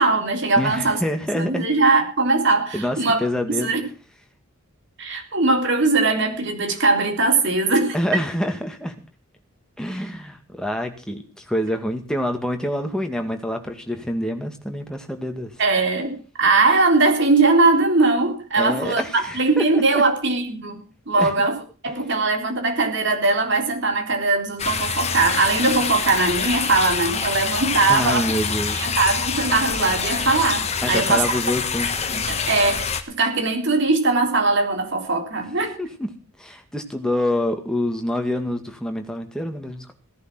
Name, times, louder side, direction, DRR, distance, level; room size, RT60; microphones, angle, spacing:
voice 1, 0.0-1.0 1.3-3.2 3.6-3.8 5.0-8.2 15.6-20.8 21.1-21.6 21.8-28.3 28.8-31.2 32.1-35.7, right 3 dB, 55° right, 3.7 m, -20 dB
voice 2, 0.6-1.7 2.7-3.7 7.9-9.0 9.8-15.5 18.6-20.0 21.2-21.3 27.9-28.8 30.8-31.9 35.8-36.1 36.4-39.9, left 1 dB, 5° left, 2.1 m, -26 dB
sound 1, 24.6-33.0, left 6 dB, 30° left, 1.4 m, -26 dB
17.0 x 11.0 x 6.1 m
head